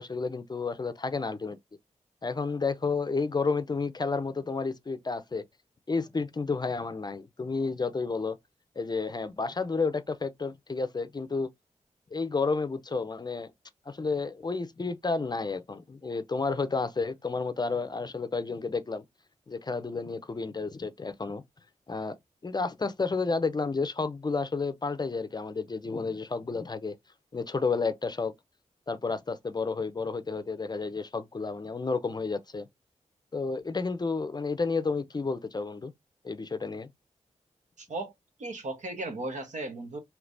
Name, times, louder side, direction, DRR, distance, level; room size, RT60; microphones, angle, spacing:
voice 1, 0.0-1.6 2.2-5.4 5.9-8.4 8.8-11.5 12.1-13.5 13.9-19.0 19.5-21.4 21.9-22.2 22.4-27.0 27.3-28.3 28.9-32.7 33.3-35.9 36.2-36.9, left 4 dB, 30° left, 0.5 m, -31 dB
voice 2, 37.8-38.1 38.4-40.0, right 2 dB, 70° right, 1.1 m, -36 dB
3.2 x 2.9 x 2.5 m
cardioid pair, 60°, 13 cm